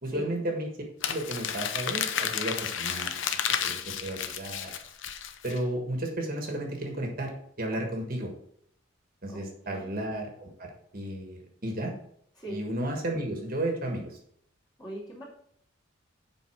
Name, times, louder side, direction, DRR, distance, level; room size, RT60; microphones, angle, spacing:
voice 1, 0.0-0.7 1.0-3.1 3.6-4.7 5.4-7.3 7.6-8.3 9.2-11.9 12.5-14.2, right 1 dB, 45° right, 2 dB, 1.5 m, -33 dB
Crumpling crinkling, 1.0-5.6, left 8 dB, 65° left, 0.7 m, -32 dB
voice 2, 9.3-9.9 12.4-12.6 14.8-15.2, right 1 dB, 20° left, -4 dB, 2.8 m, -40 dB
7.6 x 5.3 x 4.9 m, 0.67 s
head